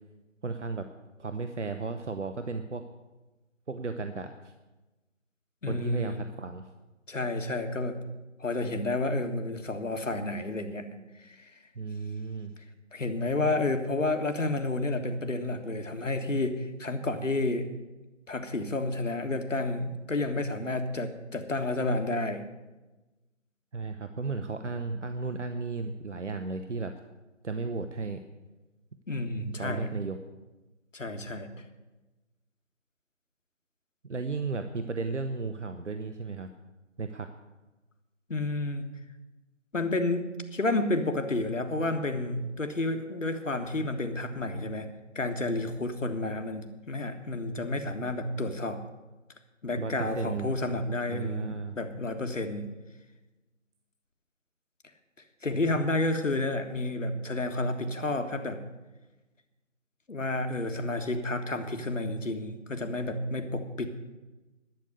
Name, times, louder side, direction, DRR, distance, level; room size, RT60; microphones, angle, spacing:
voice 1, 0.4-0.9 1.2-2.8 3.7-4.5 5.7-6.7 11.8-12.5 23.7-26.9 27.4-28.2 29.6-30.2 34.0-36.5 37.0-37.3 49.8-50.5 51.1-51.8, right 4 dB, 65° right, 8 dB, 0.9 m, -34 dB
voice 2, 5.6-6.2 7.1-8.0 8.4-10.9 11.2-11.5 12.9-17.7 18.3-22.4 29.1-29.9 30.9-31.5 38.3-38.9 39.7-44.9 45.1-48.8 49.6-52.7 55.4-58.6 60.1-63.9, left 2 dB, 75° left, 7 dB, 1.7 m, -30 dB
12.0 x 6.7 x 9.7 m, 1.1 s
figure-of-eight pair, 175°, 38 cm